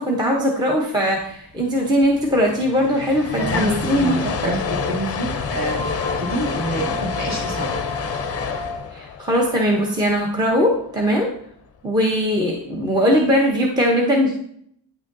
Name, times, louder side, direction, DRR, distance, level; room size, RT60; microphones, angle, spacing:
voice 1, 0.0-4.5 8.9-11.3 11.8-14.3, equal, 10° right, 0 dB, 0.7 m, -20 dB
sound 1, 1.1-8.8, left 3 dB, 5° left, 1.9 m, -36 dB
sound 2, 2.0-2.1 2.2-10.5, left 5 dB, 35° left, 0.5 m, -28 dB
voice 2, 3.4-5.9 6.2-7.8, right 1 dB, 40° right, -2 dB, 1.6 m, -27 dB
9.0 x 6.2 x 2.6 m, 0.67 s
wide cardioid pair, 170°, 44 cm